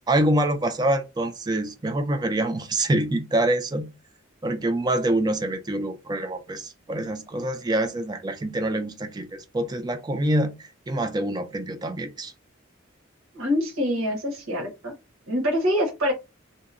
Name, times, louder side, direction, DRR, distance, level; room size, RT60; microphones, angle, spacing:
voice 1, 0.1-3.9 4.4-10.5 10.9-12.3, right 1 dB, 20° right, 0.3 m, -25 dB
voice 2, 13.3-14.9 15.3-16.1, equal, 85° right, 1.1 m, -25 dB
2.7 x 2.1 x 2.5 m
head